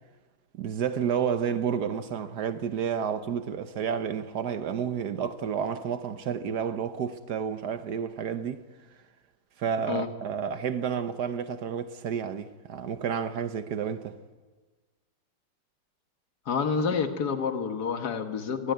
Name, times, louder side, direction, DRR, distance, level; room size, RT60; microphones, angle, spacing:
voice 1, 0.6-8.6 9.6-14.1, right 7 dB, 70° right, 1.5 m, -30 dB
voice 2, 16.5-18.7, left 6 dB, 65° left, 2.0 m, -28 dB
24.0 x 19.5 x 9.4 m
omnidirectional pair, 1.8 m